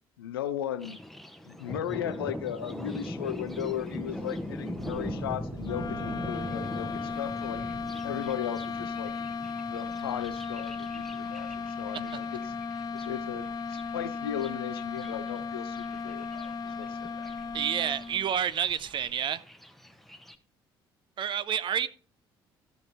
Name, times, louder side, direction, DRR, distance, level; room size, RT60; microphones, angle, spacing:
voice 1, 0.2-1.0 1.5-7.6 8.0-9.1 9.7-12.4 12.9-17.3, left 10 dB, 75° left, 0.5 m, -36 dB
Thunder, 0.8-20.4, left 1 dB, ahead, 1.0 m, -42 dB
sound 1, 2.0-19.1, right 2 dB, 70° right, 5.3 m, -48 dB
sound 2, 5.6-18.3, left 5 dB, 30° left, 0.6 m, -36 dB
voice 2, 17.5-19.4 21.2-21.9, right 9 dB, 40° right, 0.6 m, -29 dB
13.5 x 6.0 x 4.3 m
figure-of-eight pair, 50°, 12 cm